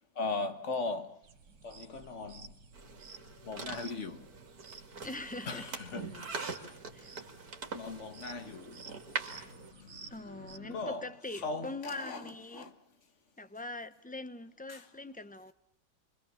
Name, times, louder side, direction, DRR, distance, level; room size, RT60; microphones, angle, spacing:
voice 1, 0.2-1.2 1.6-2.5 3.4-4.3 5.5-6.5 7.7-8.9 9.3-11.1 11.4-12.8 14.7-14.9, left 3 dB, 45° left, 1.7 m, -39 dB
sound 1, 1.2-10.6, right 6 dB, 85° right, 2.0 m, -54 dB
sound 2, 2.7-9.7, right 4 dB, 55° right, 2.9 m, -43 dB
voice 2, 5.0-5.7 6.9-7.1 10.1-12.7 13.4-15.5, left 2 dB, 10° left, 0.5 m, -42 dB
30.0 x 24.0 x 7.2 m
omnidirectional pair, 1.9 m